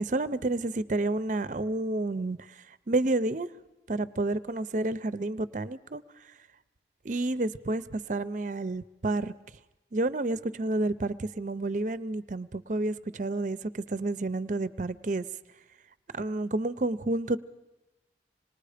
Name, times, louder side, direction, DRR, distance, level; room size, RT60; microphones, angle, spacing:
voice 1, 0.0-2.4 2.9-3.5 3.9-6.0 7.0-9.3 9.9-15.3 16.1-17.4, right 2 dB, 45° right, 15 dB, 0.6 m, -30 dB
26.0 x 20.0 x 5.0 m, 1.0 s
head